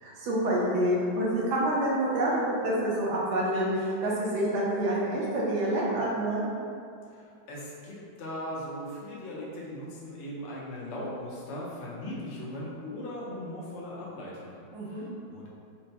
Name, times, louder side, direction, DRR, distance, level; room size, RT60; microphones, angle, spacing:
voice 1, 0.0-6.4 14.7-15.1, right 1 dB, 70° right, -5 dB, 1.1 m, -27 dB
voice 2, 7.0-15.5, left 1 dB, 75° left, -5 dB, 0.6 m, -39 dB
4.2 x 2.0 x 2.7 m, 2.3 s
omnidirectional pair, 2.1 m